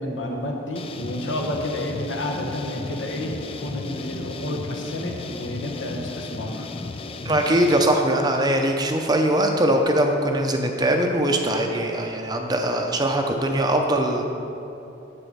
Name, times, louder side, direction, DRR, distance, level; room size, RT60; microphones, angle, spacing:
voice 1, 0.0-6.7, left 1 dB, 70° left, 1 dB, 1.3 m, -30 dB
sound 1, 0.8-7.9, left 3 dB, 30° left, 0.4 m, -34 dB
voice 2, 7.2-14.2, right 1 dB, 20° right, 3 dB, 0.6 m, -21 dB
9.1 x 7.6 x 5.6 m, 2.8 s
head